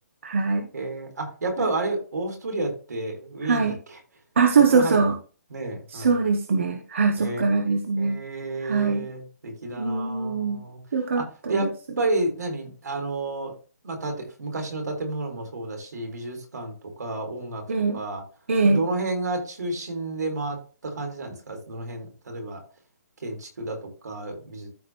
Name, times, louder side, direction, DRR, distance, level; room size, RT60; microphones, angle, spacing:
voice 1, 0.2-0.7 3.4-3.8 4.4-5.1 5.9-8.2 8.6-9.1 9.8-10.6 10.9-11.7 17.7-18.0 18.5-18.8, right 4 dB, 45° right, 4 dB, 1.2 m, -22 dB
voice 2, 0.7-3.7 4.7-5.0 5.5-6.2 7.2-7.5 8.0-10.8 11.1-13.5 13.8-17.6 17.9-18.2 18.6-22.6 23.2-24.7, right 2 dB, 80° right, 2 dB, 4.8 m, -31 dB
14.0 x 5.0 x 3.2 m, 0.36 s
hypercardioid pair, 180°, 9 cm